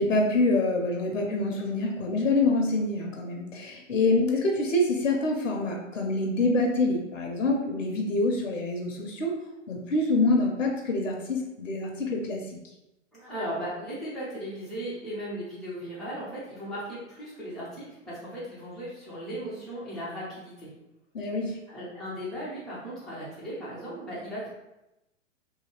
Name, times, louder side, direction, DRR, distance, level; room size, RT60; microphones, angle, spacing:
voice 1, 0.0-9.3 9.7-12.6 21.1-21.6, left 2 dB, 75° left, 1 dB, 0.7 m, -26 dB
voice 2, 13.1-20.7 21.7-24.5, equal, ahead, -9 dB, 0.3 m, -37 dB
2.8 x 2.6 x 2.8 m, 0.93 s
figure-of-eight pair, 100°, 38 cm